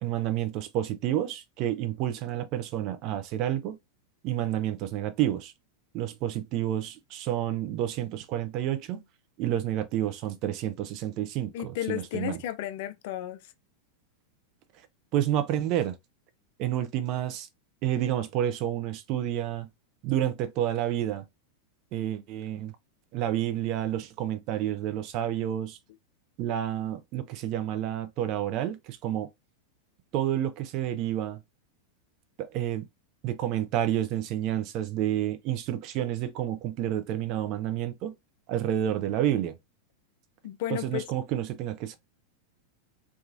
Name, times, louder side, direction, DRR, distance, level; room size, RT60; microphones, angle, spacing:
voice 1, 0.0-3.8 4.2-5.5 5.9-9.0 9.4-12.4 15.1-16.0 16.6-17.5 17.8-19.7 20.0-21.3 21.9-22.8 23.1-25.8 26.4-29.3 30.1-31.4 32.4-32.9 33.2-38.2 38.5-39.6 40.7-42.0, right 11 dB, 40° right, 0.5 m, -29 dB
voice 2, 11.5-13.5 40.4-41.0, left 13 dB, 50° left, 0.3 m, -33 dB
2.9 x 2.3 x 2.5 m
figure-of-eight pair, 90°, 0 cm